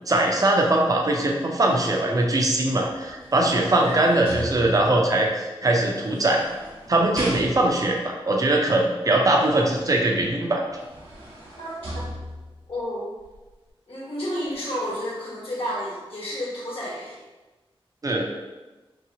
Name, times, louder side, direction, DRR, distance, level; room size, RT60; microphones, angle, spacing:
voice 1, 0.1-6.4 6.9-10.6 18.0-18.2, right 2 dB, 35° right, 0 dB, 0.5 m, -21 dB
sound 1, 2.9-5.1 6.0-7.9 10.2-10.3 10.7-12.7 13.2-13.4, equal, 60° right, 1.2 m, -37 dB
voice 2, 12.7-13.1 13.9-17.2, equal, 70° left, -7 dB, 1.1 m, -31 dB
2.8 x 2.8 x 2.8 m, 1.2 s
wide cardioid pair, 95°, 10 cm